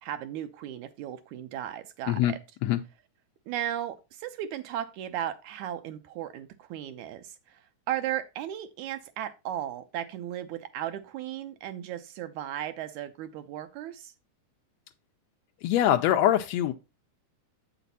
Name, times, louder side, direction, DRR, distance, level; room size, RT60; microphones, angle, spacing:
voice 1, 0.0-2.4 3.5-14.1, right 11 dB, 80° right, 2.0 m, -36 dB
voice 2, 15.6-16.7, left 12 dB, 85° left, 1.5 m, -23 dB
8.2 x 5.9 x 4.0 m
omnidirectional pair, 3.6 m